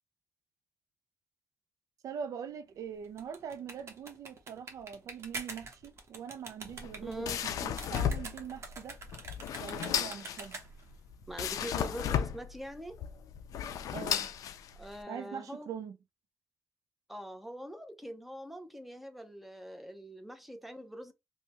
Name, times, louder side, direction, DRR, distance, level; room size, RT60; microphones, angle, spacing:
voice 1, 2.0-9.0 9.6-10.6 13.9-14.3 15.1-16.0, right 7 dB, 75° right, 0.4 m, -43 dB
sound 1, 3.0-10.9, right 3 dB, 50° right, 0.9 m, -45 dB
sound 2, 6.7-15.0, left 9 dB, 90° left, 0.4 m, -35 dB
voice 2, 7.0-7.4 11.3-13.0 14.8-15.7 17.1-21.1, equal, 5° right, 0.5 m, -43 dB
3.2 x 2.1 x 2.9 m
cardioid pair, 120°, 6 cm